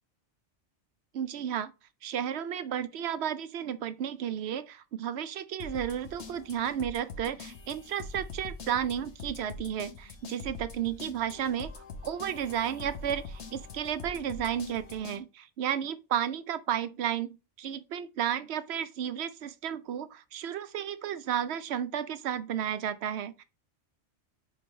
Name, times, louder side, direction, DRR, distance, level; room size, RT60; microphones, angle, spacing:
voice 1, 1.1-1.7 2.0-23.4, right 9 dB, 70° right, 0.8 m, -33 dB
sound 1, 5.6-15.2, left 3 dB, 70° left, 1.2 m, -44 dB
5.3 x 3.9 x 5.2 m
omnidirectional pair, 1.2 m